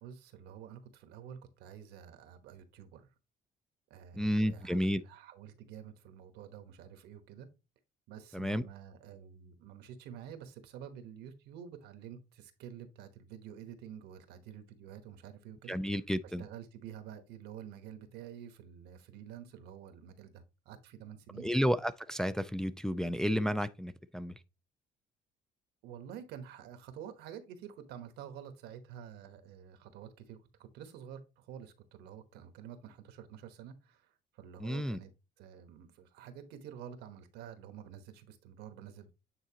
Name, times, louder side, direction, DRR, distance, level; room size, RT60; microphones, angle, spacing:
voice 1, 0.0-3.1 3.9-7.5 8.1-16.0 16.2-21.5 25.8-34.1 34.3-35.1 35.4-39.1, right 9 dB, 85° right, 1.1 m, -49 dB
voice 2, 4.2-5.0 8.3-8.6 15.7-16.4 21.4-24.3 34.6-35.0, equal, 5° left, 0.3 m, -31 dB
8.9 x 3.9 x 2.8 m
cardioid pair, 110°, 17 cm